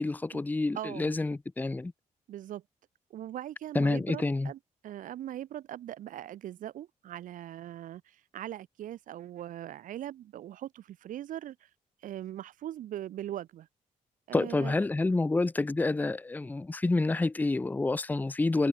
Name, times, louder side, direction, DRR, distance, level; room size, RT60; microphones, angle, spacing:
voice 1, 0.0-1.9 3.7-4.5 14.3-18.7, left 2 dB, 15° left, 0.5 m, -28 dB
voice 2, 0.8-1.1 2.3-2.6 3.1-11.7 12.0-13.7 14.3-14.8, right 12 dB, 90° right, 1.9 m, -40 dB
cardioid pair, 100°, 13 cm